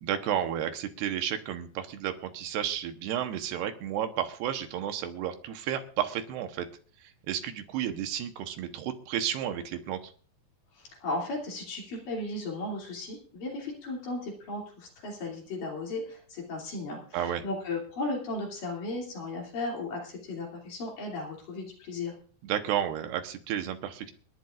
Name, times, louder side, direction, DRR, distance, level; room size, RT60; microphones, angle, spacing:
voice 1, 0.0-6.7 7.0-10.0 17.1-17.4 22.4-24.1, right 10 dB, 80° right, 7 dB, 3.1 m, -32 dB
voice 2, 10.7-22.1, left 2 dB, 55° left, -1 dB, 4.3 m, -35 dB
29.0 x 11.0 x 2.5 m, 0.42 s
omnidirectional pair, 4.8 m